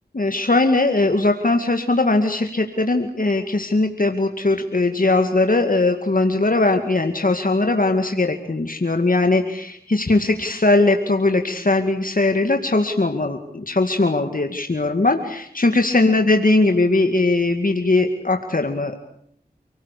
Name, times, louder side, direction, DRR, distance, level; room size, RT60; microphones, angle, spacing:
voice 1, 0.1-19.0, left 2 dB, 55° left, 5 dB, 2.2 m, -19 dB
29.0 x 18.5 x 8.5 m, 0.70 s
wide cardioid pair, 45°, 17 cm